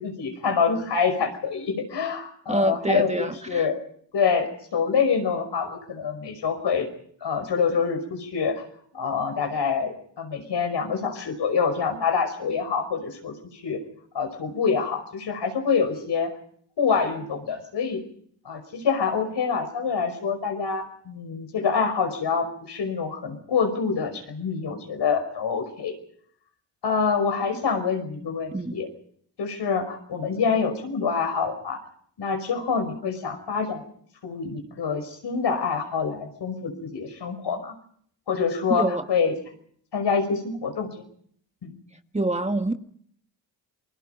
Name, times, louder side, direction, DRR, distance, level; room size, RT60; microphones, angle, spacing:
voice 1, 0.0-3.8 4.1-6.9 7.2-8.6 8.9-13.8 14.1-16.3 16.8-18.0 18.4-25.9 26.8-28.9 29.4-31.8 32.2-33.8 34.2-37.7 38.3-39.3 39.9-41.0 41.6-41.8, left 5 dB, 70° left, 6 dB, 5.5 m, -26 dB
voice 2, 2.5-3.7 28.5-28.8 38.7-39.0 42.1-42.7, right 1 dB, 15° right, 7 dB, 1.6 m, -26 dB
29.5 x 21.5 x 5.2 m, 0.62 s
cardioid pair, 60°, 43 cm